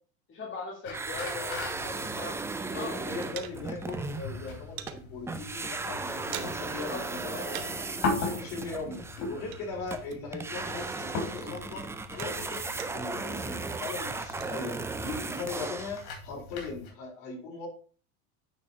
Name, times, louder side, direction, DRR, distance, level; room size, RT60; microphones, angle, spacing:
voice 1, 0.3-2.3 2.7-2.9 6.6-7.0 7.3-7.5, left 3 dB, 30° left, -1 dB, 2.1 m, -40 dB
sound 1, 0.8-16.9, left 3 dB, 75° left, 3.5 m, -40 dB
sound 2, 0.9-5.0 5.3-16.1, right 3 dB, 5° right, 0.4 m, -36 dB
sound 3, 2.0-2.6 2.9-4.0 4.3-5.0 5.5-5.6 5.9-6.8 7.1-10.5 10.8-13.2 13.6-14.5, right 12 dB, 50° right, 1.1 m, -46 dB
voice 2, 2.7-11.9 12.1-12.7 12.9-17.7, left 4 dB, 55° left, -1 dB, 4.4 m, -39 dB
9.6 x 4.3 x 4.7 m, 0.40 s
supercardioid pair, 120°, 43 cm